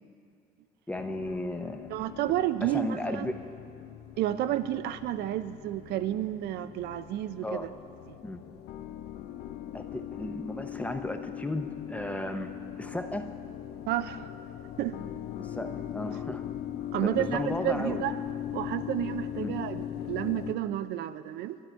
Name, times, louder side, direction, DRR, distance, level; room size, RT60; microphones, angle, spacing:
voice 1, 0.9-1.9 2.6-3.3 7.4-7.7 8.2-8.4 9.7-12.5 12.8-13.2 15.4-16.4 17.0-18.0 19.4-19.5, left 1 dB, 10° left, 6 dB, 0.6 m, -35 dB
sound 1, 1.0-20.5, left 10 dB, 75° left, 0.5 m, -40 dB
voice 2, 1.9-3.3 4.2-7.7 8.1-8.2 13.9-14.3 14.8-14.9 16.9-18.2 18.5-21.6, right 12 dB, 75° right, 12 dB, 0.4 m, -31 dB
12.0 x 9.6 x 4.5 m, 2.3 s
cardioid pair, 110°, 17 cm